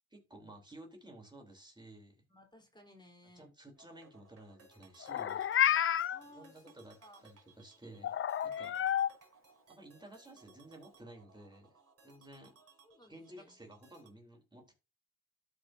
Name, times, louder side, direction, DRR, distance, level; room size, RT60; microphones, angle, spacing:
voice 1, 0.1-2.2 3.3-5.4 6.3-7.0 7.2-8.2 8.4-8.8 9.7-11.8 12.0-12.5 13.1-14.7, right 1 dB, 15° right, 3.2 m, -54 dB
voice 2, 2.3-3.5 6.1-6.7 7.0-7.3 12.5-13.5, left 1 dB, 15° left, 3.5 m, -59 dB
sound 1, 3.7-14.1, right 3 dB, 50° right, 4.5 m, -63 dB
Meow, 5.0-6.2 8.0-9.1, left 10 dB, 45° left, 0.4 m, -30 dB
12.5 x 5.3 x 2.6 m
cardioid pair, 60°, 31 cm